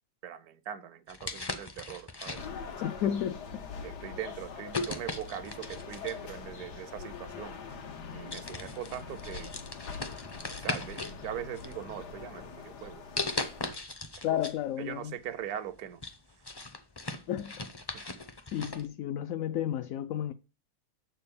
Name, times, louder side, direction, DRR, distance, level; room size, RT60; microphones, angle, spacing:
voice 1, 0.2-2.4 2.8-2.9 3.8-7.6 8.1-9.5 10.5-13.0 14.3-14.4 14.8-16.0, right 10 dB, 70° right, 1.1 m, -41 dB
sound 1, 1.1-2.7 3.5-3.7 4.7-6.3 7.4-7.5 7.9-8.0 8.3-11.2 11.5-12.3 13.2-14.6 14.9-15.0 15.5-18.8, left 3 dB, 30° left, 0.4 m, -38 dB
sound 2, 2.3-13.7, left 5 dB, 90° left, 1.7 m, -43 dB
voice 2, 2.8-3.4 14.2-15.1 17.3-17.5 18.5-20.3, left 10 dB, 70° left, 0.8 m, -32 dB
7.3 x 4.4 x 6.9 m
omnidirectional pair, 1.7 m